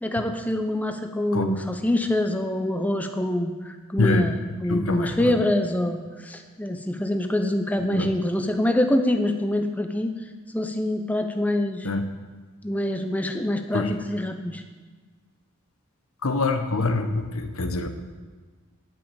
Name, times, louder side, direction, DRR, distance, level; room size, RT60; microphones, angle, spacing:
voice 1, 0.0-10.1 10.5-11.9 12.6-14.6, left 1 dB, 5° left, 6 dB, 0.7 m, -25 dB
voice 2, 4.7-5.3 7.9-8.1 11.8-12.0 13.7-13.9 16.2-17.9, left 2 dB, 70° left, 8 dB, 1.0 m, -24 dB
9.3 x 7.5 x 8.8 m, 1.4 s
head